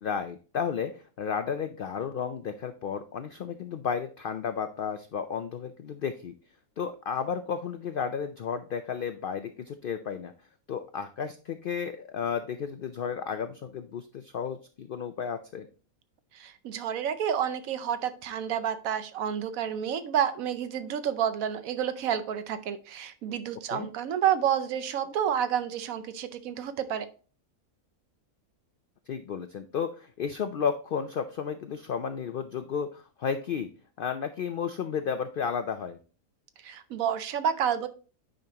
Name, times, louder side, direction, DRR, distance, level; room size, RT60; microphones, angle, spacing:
voice 1, 0.0-6.3 6.8-10.3 10.7-15.7 23.7-23.9 29.1-33.7 34.0-36.0, left 7 dB, 90° left, 9 dB, 0.4 m, -33 dB
voice 2, 16.3-27.1 36.6-37.9, right 9 dB, 70° right, 11 dB, 1.1 m, -29 dB
8.9 x 5.3 x 2.8 m, 0.37 s
omnidirectional pair, 1.5 m